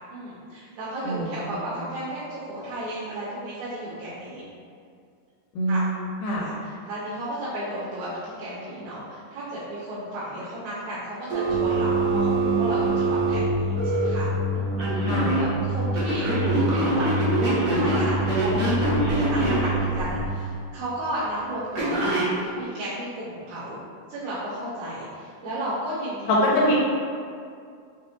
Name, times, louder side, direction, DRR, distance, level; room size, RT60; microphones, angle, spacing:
voice 1, 0.1-4.4 5.7-5.8 6.3-23.8 24.1-26.7, right 1 dB, 85° right, -10 dB, 2.4 m, -34 dB
voice 2, 5.6-6.5 15.1-15.4 26.3-26.7, equal, 80° left, -4 dB, 1.9 m, -23 dB
Telephone, 11.3-14.1 14.8-15.4 15.9-19.7 21.8-22.3, right 2 dB, 70° right, 1.4 m, -24 dB
sound 1, 11.5-20.3, equal, 55° right, 1.3 m, -27 dB
6.0 x 2.1 x 2.9 m, 2.3 s
omnidirectional pair, 3.9 m